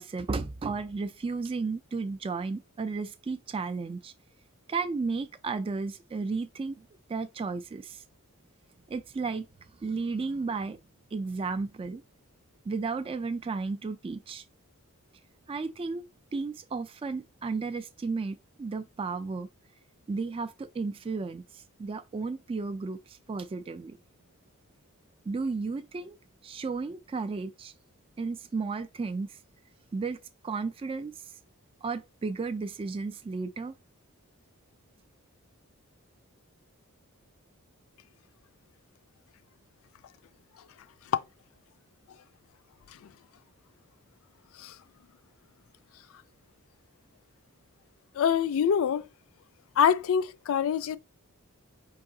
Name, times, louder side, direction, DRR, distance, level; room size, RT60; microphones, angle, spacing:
voice 1, 0.0-4.1 4.7-8.0 8.9-9.5 9.8-10.8 11.1-12.0 12.7-14.4 15.5-16.0 16.3-19.5 20.1-24.0 25.3-26.2 26.4-27.7 28.2-29.4 29.9-30.2 30.4-31.1 31.8-33.7, right 4 dB, 25° right, 0.3 m, -33 dB
voice 2, 48.2-49.1 49.8-51.0, left 8 dB, 65° left, 0.3 m, -25 dB
4.8 x 2.7 x 3.7 m
head